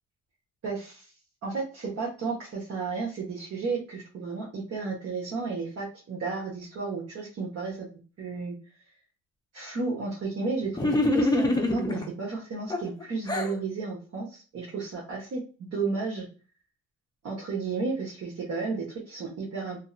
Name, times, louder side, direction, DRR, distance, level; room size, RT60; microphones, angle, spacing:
voice 1, 0.6-1.1 1.4-7.9 8.2-8.5 9.5-16.3 17.2-19.8, right 4 dB, 55° right, -5 dB, 1.2 m, -33 dB
sound 1, 10.7-12.1 12.7-13.6, left 2 dB, 15° left, 0.5 m, -25 dB
2.9 x 2.7 x 2.4 m, 0.36 s
cardioid pair, 90°, 30 cm